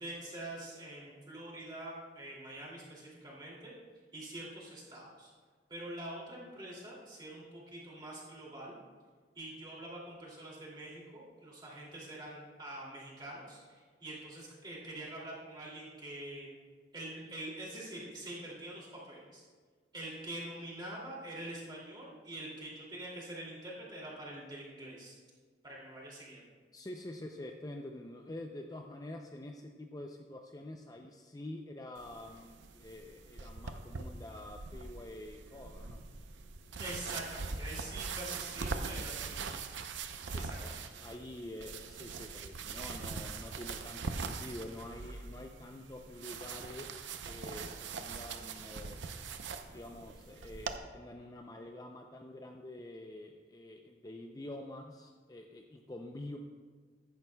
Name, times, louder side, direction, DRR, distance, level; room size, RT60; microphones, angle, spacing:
voice 1, 0.0-3.7 4.1-5.3 5.7-8.8 9.3-16.5 16.9-19.4 19.9-25.2 25.6-26.5 36.8-39.5 40.3-40.8, right 1 dB, 25° right, -5 dB, 2.5 m, -45 dB
voice 2, 26.7-36.0 40.2-40.7 41.0-49.3 49.7-56.4, left 1 dB, 20° left, 3 dB, 0.4 m, -47 dB
sound 1, 32.0-50.8, right 4 dB, 90° right, 0.6 m, -42 dB
14.5 x 10.5 x 2.2 m, 1.5 s
head